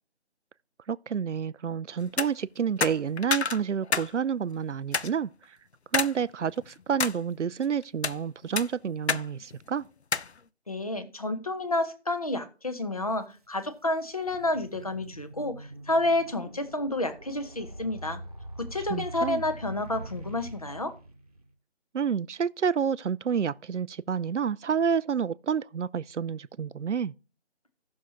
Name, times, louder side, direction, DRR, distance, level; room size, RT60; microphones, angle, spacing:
voice 1, 0.9-5.6 5.9-9.9 18.8-19.4 21.9-27.1, right 7 dB, 90° right, 0.5 m, -29 dB
sound 1, 2.0-2.3 2.8-4.1 4.4-4.5 4.9-5.1 5.9-6.1 6.6-7.2 7.8-8.2 8.6-9.3 9.5-9.6 10.1-10.3, left 5 dB, 70° left, 0.6 m, -28 dB
voice 2, 10.7-18.2 18.6-20.9, left 2 dB, 30° left, 0.9 m, -30 dB
sound 2, 13.2-13.3 13.9-21.5, right 1 dB, 35° right, 1.1 m, -43 dB
16.5 x 6.4 x 2.9 m
figure-of-eight pair, 160°, 35 cm